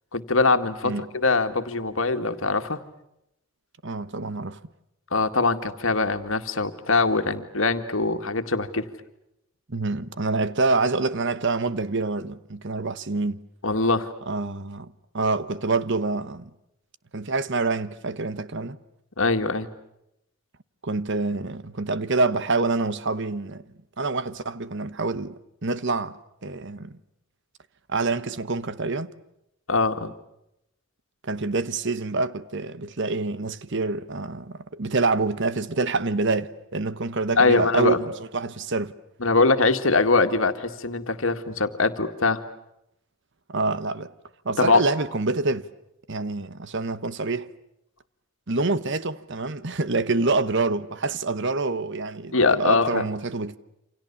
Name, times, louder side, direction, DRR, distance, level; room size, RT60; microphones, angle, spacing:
voice 1, 0.1-2.8 5.1-8.9 13.6-14.1 19.2-19.7 29.7-30.1 37.4-38.1 39.2-42.4 44.6-44.8 52.3-53.1, left 3 dB, 65° left, 2.0 m, -22 dB
voice 2, 3.8-4.6 9.7-13.4 14.3-16.5 17.1-18.8 20.8-23.6 24.0-25.3 25.6-26.2 26.4-26.9 27.9-29.1 31.2-38.0 38.3-38.9 43.5-44.1 44.4-45.7 46.1-47.5 48.5-53.6, right 3 dB, 55° right, 1.1 m, -26 dB
29.0 x 27.0 x 7.1 m
head